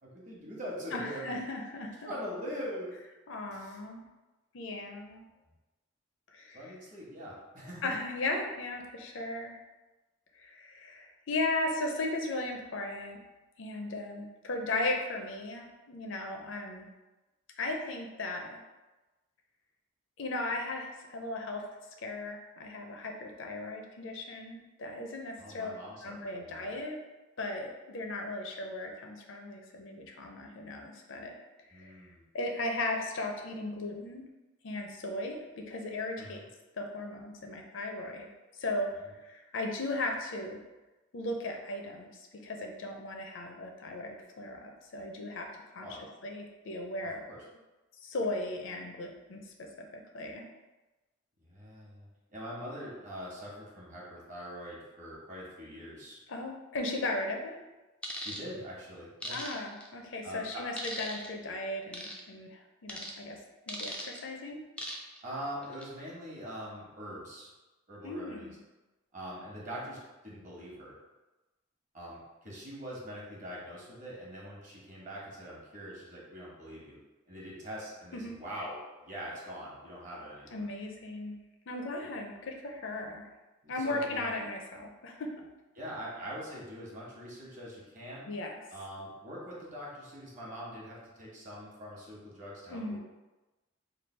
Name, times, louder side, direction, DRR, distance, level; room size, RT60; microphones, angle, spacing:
voice 1, 0.0-1.4 2.0-3.0 3.5-3.8 6.5-7.9 25.4-26.1 26.4-26.7 31.7-32.2 36.2-36.4 39.0-39.1 45.8-46.1 47.3-47.4 51.4-56.2 58.2-59.4 60.2-60.7 65.2-67.5 67.9-68.6 69.1-71.0 71.9-77.0 77.3-80.6 83.6-84.4 85.7-88.3 88.7-93.0, equal, 40° right, -5 dB, 1.1 m, -43 dB
voice 2, 0.9-2.1 3.3-4.0 4.5-5.3 6.3-6.7 7.8-9.6 10.4-13.2 13.6-16.9 17.6-18.6 20.2-21.6 22.0-25.7 26.0-27.0 27.4-31.3 31.7-32.0 32.3-34.2 34.6-36.4 36.8-38.3 38.6-40.6 41.1-42.1 42.4-45.9 46.2-47.2 48.0-49.4 50.1-50.4 56.3-57.6 59.3-63.4 63.7-64.6 68.0-68.6 78.1-78.4 80.5-81.3 81.7-83.3 83.7-85.3 88.3-88.6 92.7-93.0, left 2 dB, 60° left, 2 dB, 0.5 m, -36 dB
sound 1, 58.0-58.4 59.2-59.9 60.8-61.3 61.9-62.2 62.9-63.1 63.7-64.2 64.8-65.2 65.6-65.8, equal, 5° left, 0.3 m, -39 dB
3.2 x 2.3 x 4.3 m, 1.1 s
head